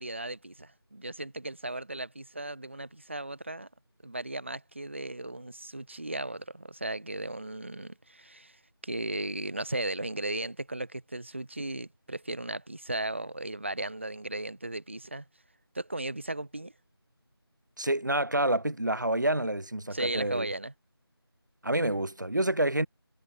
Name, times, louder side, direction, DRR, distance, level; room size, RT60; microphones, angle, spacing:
voice 1, 0.0-3.7 4.0-15.2 15.7-16.7 19.9-20.7, right 2 dB, 30° right, 6.6 m, -36 dB
voice 2, 17.8-20.5 21.6-22.9, right 1 dB, 45° right, 3.4 m, -28 dB
figure-of-eight pair, 180°, 13 cm